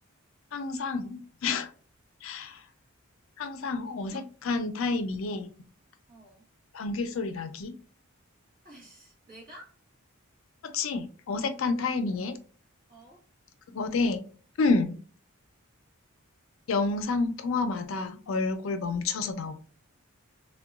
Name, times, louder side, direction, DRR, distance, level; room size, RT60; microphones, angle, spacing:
voice 1, 0.5-1.7 2.2-2.7 3.4-5.5 6.7-7.8 10.6-12.4 13.7-14.2 14.6-15.0 16.7-19.5, left 3 dB, 70° left, 0.4 m, -29 dB
voice 2, 3.8-4.2 6.1-6.5 8.6-9.8 11.9-12.2 12.9-13.2, right 1 dB, 40° right, 1.2 m, -51 dB
3.7 x 2.2 x 2.2 m
head